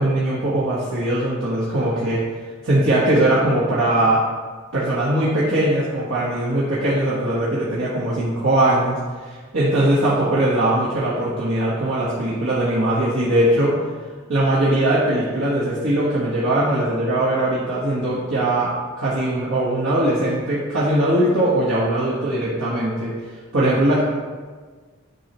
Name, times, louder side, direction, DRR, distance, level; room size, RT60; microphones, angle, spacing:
voice 1, 0.0-2.2 2.6-4.2 4.7-13.7 14.3-23.1 23.5-24.0, right 1 dB, 80° right, -8 dB, 1.4 m, -20 dB
9.7 x 5.7 x 3.1 m, 1.5 s
head